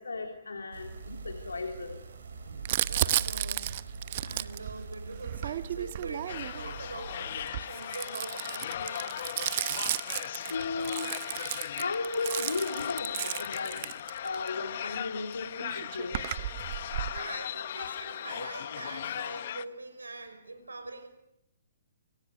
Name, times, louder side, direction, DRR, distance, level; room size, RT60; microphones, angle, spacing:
voice 1, 0.0-2.0 10.5-11.1 11.7-13.9 14.2-16.2, left 3 dB, 75° left, 4 dB, 3.3 m, -35 dB
sound 1, 0.7-7.5, right 4 dB, 65° right, 4.6 m, -43 dB
Crumpling crinkling, 2.7-6.7 7.4-14.5 15.3-15.4 15.6-17.2, right 13 dB, 45° right, 1.0 m, -34 dB
voice 2, 2.8-9.2 16.8-21.1, right 3 dB, 80° right, 9 dB, 6.1 m, -43 dB
sound 2, 6.3-19.7, left 10 dB, 50° left, 1.1 m, -38 dB
29.0 x 26.5 x 6.6 m, 0.80 s
figure-of-eight pair, 125°, 0 cm